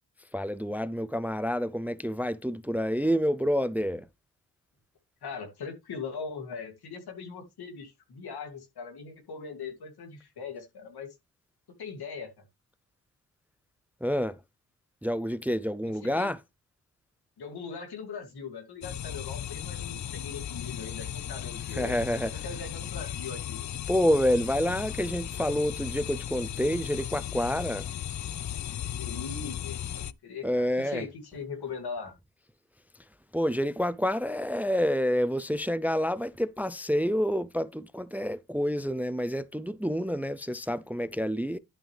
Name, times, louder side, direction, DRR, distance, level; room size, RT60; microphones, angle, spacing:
voice 1, 0.3-4.1 14.0-14.4 15.0-16.4 21.7-22.4 23.9-27.9 30.4-31.1 32.9-33.0 33.3-41.6, equal, 5° right, 0.4 m, -28 dB
voice 2, 5.2-11.1 11.8-12.3 16.0-16.3 17.4-21.9 22.2-23.7 28.9-32.1, left 5 dB, 85° left, 2.5 m, -40 dB
sound 1, 18.8-30.1, left 10 dB, 50° left, 0.5 m, -36 dB
11.5 x 6.0 x 3.3 m
cardioid pair, 70°, 38 cm